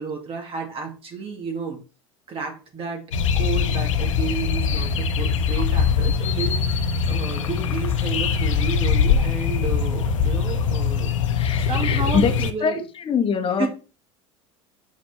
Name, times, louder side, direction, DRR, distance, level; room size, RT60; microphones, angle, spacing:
voice 1, 0.0-1.8 2.3-3.1 3.3-11.1 11.6-12.8 13.6-13.7, right 5 dB, 35° right, 2.7 m, -31 dB
sound 1, 3.1-12.5, left 6 dB, 85° left, 0.8 m, -22 dB
voice 2, 11.4-12.3 12.6-12.8 13.0-13.7, left 6 dB, 35° left, 1.3 m, -23 dB
6.3 x 5.0 x 4.5 m
hypercardioid pair, 85°, 16 cm